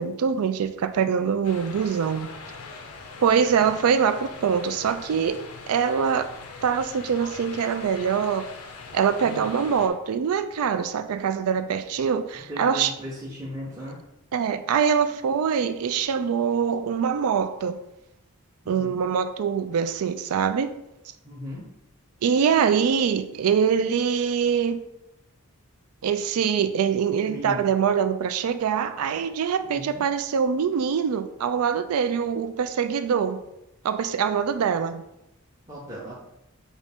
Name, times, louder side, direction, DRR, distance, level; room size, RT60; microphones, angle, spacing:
voice 1, 0.0-2.3 3.2-5.4 5.7-6.3 6.6-8.4 8.9-12.9 14.3-17.8 18.7-20.8 22.2-24.8 26.0-33.4 33.8-35.0, right 7 dB, 80° right, 0.3 m, -24 dB
sound 1, 1.4-9.9, left 4 dB, 85° left, 0.6 m, -42 dB
voice 2, 12.3-14.0 18.6-19.0 21.2-21.7 27.2-27.7 29.6-30.0 35.7-36.2, equal, 15° right, 0.7 m, -37 dB
5.3 x 2.4 x 3.5 m
head